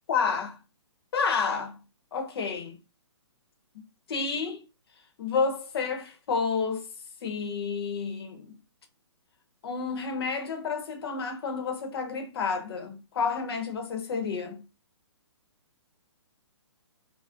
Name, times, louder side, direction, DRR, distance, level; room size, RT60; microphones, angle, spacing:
voice 1, 0.1-0.6 1.1-1.8 2.1-2.7 4.1-4.6 5.2-6.8 7.2-8.6 9.6-14.6, left 5 dB, 55° left, 0.8 m, -30 dB
2.5 x 2.0 x 2.4 m
hypercardioid pair, 145°, 16 cm